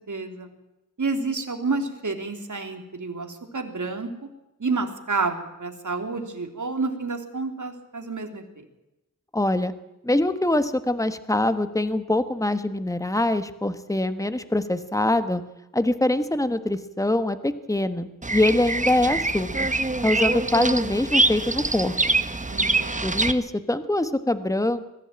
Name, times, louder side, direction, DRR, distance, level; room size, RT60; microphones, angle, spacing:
voice 1, 0.1-0.5 1.0-4.1 4.6-8.6 22.5-23.1, right 4 dB, 60° right, 5 dB, 3.2 m, -29 dB
voice 2, 9.3-9.7 10.0-15.4 15.7-19.7 20.0-22.0 23.0-24.8, left 1 dB, 10° left, 11 dB, 1.3 m, -24 dB
Bird vocalization bird call bird song, 18.2-23.3, right 2 dB, 20° right, 1.1 m, -24 dB
21.5 x 15.0 x 9.0 m, 0.96 s
wide cardioid pair, 90°, 33 cm